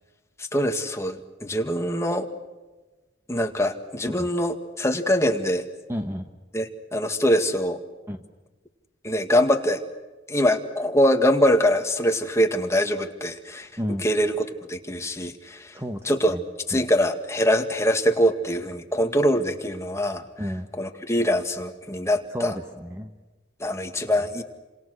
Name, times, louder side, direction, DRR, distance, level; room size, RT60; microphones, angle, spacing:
voice 1, 0.4-2.3 3.3-5.6 6.5-7.8 9.0-9.8 10.3-13.7 14.0-14.3 14.7-15.7 16.1-16.4 16.7-20.2 20.8-22.5 23.6-24.4, equal, 15° left, 5 dB, 2.0 m, -23 dB
voice 2, 5.9-6.3 8.1-8.2 13.8-14.1 15.7-16.4 16.7-16.8 20.4-20.7 22.3-23.1 24.0-24.1, equal, 15° right, 6 dB, 1.3 m, -32 dB
29.5 x 26.5 x 6.6 m, 1.2 s
head